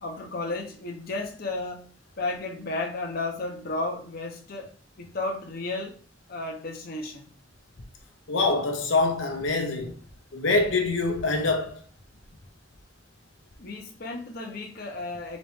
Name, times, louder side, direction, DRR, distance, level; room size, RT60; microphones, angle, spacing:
voice 1, 0.0-4.7 5.0-6.0 6.3-7.3 13.6-15.4, left 2 dB, 50° left, 0.7 m, -33 dB
voice 2, 8.3-9.9 10.3-11.8, left 3 dB, 85° left, 0.8 m, -25 dB
4.0 x 3.0 x 3.4 m
head